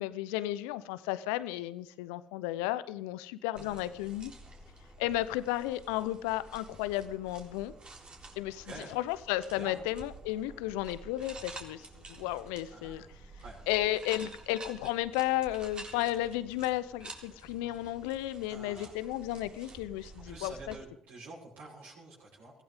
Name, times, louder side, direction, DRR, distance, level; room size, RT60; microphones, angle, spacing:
voice 1, 0.0-4.3 5.0-7.7 8.4-13.1 13.7-20.8, left 15 dB, 80° left, 16 dB, 0.7 m, -33 dB
sound 1, 3.5-20.8, right 3 dB, 35° right, 3.6 m, -50 dB
voice 2, 8.6-8.9 9.5-9.9 12.7-13.1 13.4-13.6 18.5-19.0 20.2-22.5, right 2 dB, 70° right, -7 dB, 7.1 m, -48 dB
22.5 x 16.0 x 3.7 m, 0.68 s
hypercardioid pair, 50°, 3 cm